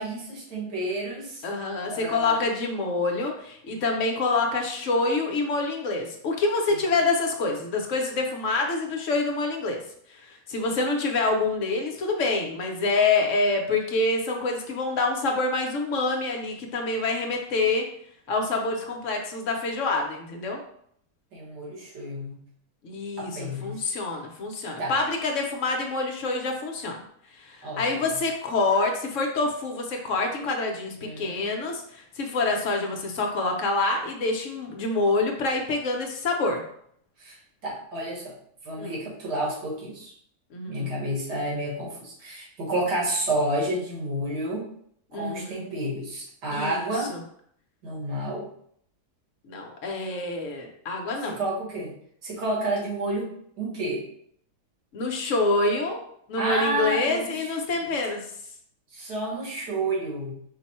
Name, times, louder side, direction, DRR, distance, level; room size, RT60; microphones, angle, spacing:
voice 1, 0.0-1.4 1.9-2.4 21.3-22.4 23.2-23.8 24.8-25.0 27.6-27.8 31.0-31.5 37.2-38.4 38.6-40.1 40.7-44.7 45.1-47.1 47.8-48.5 51.3-51.9 52.2-54.1 56.4-57.6 58.9-60.3, right 1 dB, 75° right, -4 dB, 2.0 m, -30 dB
voice 2, 1.4-9.8 10.1-17.9 18.3-20.6 22.8-27.0 27.4-36.6 38.8-38.9 40.5-40.9 45.1-45.6 46.5-47.2 49.5-51.4 54.9-56.0 56.3-58.2, left 3 dB, 60° left, 2 dB, 0.9 m, -26 dB
5.2 x 2.1 x 4.1 m, 0.67 s
omnidirectional pair, 1.8 m